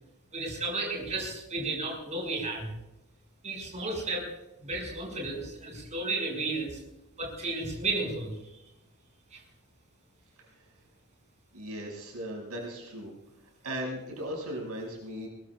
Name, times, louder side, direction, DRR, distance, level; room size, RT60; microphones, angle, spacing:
voice 1, 0.3-2.7 3.4-4.3 4.6-6.8 7.2-8.4 9.3-9.4, right 2 dB, 30° right, -1 dB, 6.4 m, -33 dB
voice 2, 11.5-13.1 13.6-15.3, equal, 75° right, -1 dB, 6.3 m, -37 dB
22.0 x 22.0 x 2.5 m, 0.96 s
head